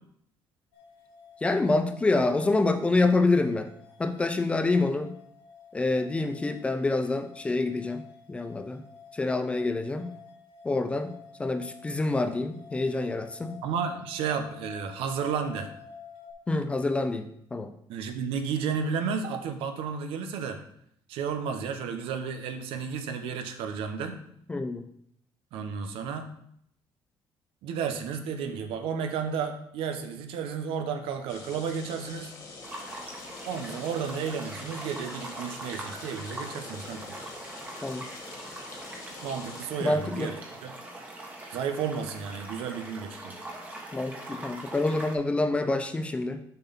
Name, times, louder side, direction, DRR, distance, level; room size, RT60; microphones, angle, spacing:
sound 1, 0.7-16.3, left 6 dB, 65° left, 1.3 m, -51 dB
voice 1, 1.4-3.7 4.0-5.2 5.7-8.0 8.3-8.8 9.1-10.1 10.6-11.1 11.4-13.6 16.5-17.7 24.5-24.9 37.8-38.0 39.8-40.3 43.9-46.4, left 2 dB, 15° left, 8 dB, 0.4 m, -27 dB
voice 2, 13.6-15.7 17.9-20.6 21.1-24.2 25.5-26.3 27.6-32.3 33.5-37.1 39.2-40.3 40.6-40.7 41.5-43.4, right 6 dB, 90° right, 7 dB, 0.9 m, -32 dB
sound 2, 31.3-39.7, left 4 dB, 40° left, 1.3 m, -45 dB
sound 3, 32.6-45.1, right 2 dB, 20° right, 1.2 m, -42 dB
6.9 x 5.9 x 4.1 m, 0.70 s
cardioid pair, 170°, 9 cm